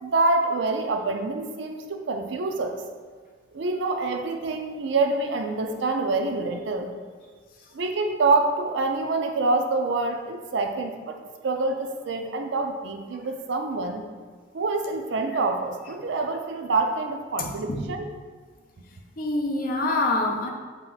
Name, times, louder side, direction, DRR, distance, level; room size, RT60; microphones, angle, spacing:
voice 1, 0.0-2.8 3.5-6.9 7.7-11.2 11.4-14.0 14.5-18.1, right 3 dB, 65° right, 5 dB, 0.4 m, -26 dB
voice 2, 17.4-17.8 19.2-20.5, left 2 dB, 45° left, 1 dB, 0.5 m, -26 dB
4.2 x 2.9 x 3.8 m, 1.5 s
head